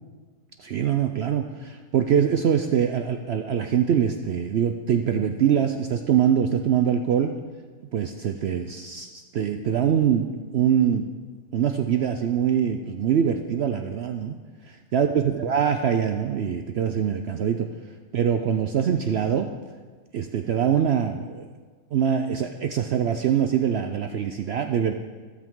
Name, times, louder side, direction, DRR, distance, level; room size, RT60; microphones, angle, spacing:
voice 1, 0.6-7.4 7.9-11.1 11.5-14.4 14.7-17.7 18.1-19.5 20.1-21.4 21.9-24.9, right 8 dB, 85° right, 6 dB, 0.5 m, -23 dB
13.0 x 12.5 x 3.7 m, 1.5 s
omnidirectional pair, 1.7 m